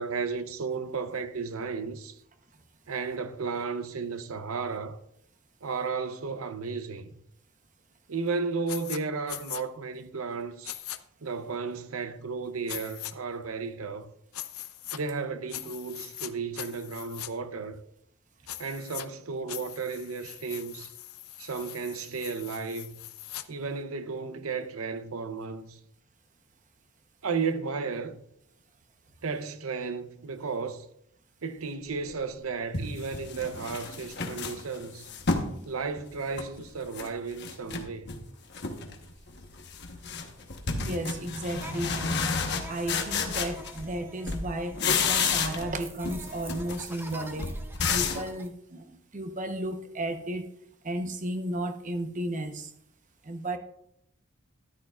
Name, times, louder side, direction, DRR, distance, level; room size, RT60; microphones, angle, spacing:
voice 1, 0.0-2.2 2.9-5.0 5.6-7.1 8.1-10.8 11.2-14.1 14.9-17.8 18.6-20.9 21.4-23.0 23.5-25.8 27.2-28.2 29.2-30.9 31.4-35.1 35.7-38.2, right 4 dB, 80° right, 0.7 m, -34 dB
sound 1, 8.7-9.0 9.3-9.6 10.6-11.0 12.7-13.1 14.3-15.0 15.5-16.3 16.6-17.3 18.5-19.1 19.5-23.4, left 14 dB, 85° left, 0.6 m, -40 dB
sound 2, 32.1-32.2 32.7-35.5 36.0-37.1 37.4-38.2 38.5-39.0 39.3-44.0 44.3-45.8 46.0-48.3, left 5 dB, 50° left, 1.1 m, -31 dB
voice 2, 40.8-42.3 42.7-47.5 47.9-50.4 50.8-52.7 53.2-53.6, right 1 dB, 35° right, 0.9 m, -34 dB
sound 3, 41.6-48.5, right 2 dB, 10° right, 0.7 m, -46 dB
13.0 x 10.5 x 2.4 m
head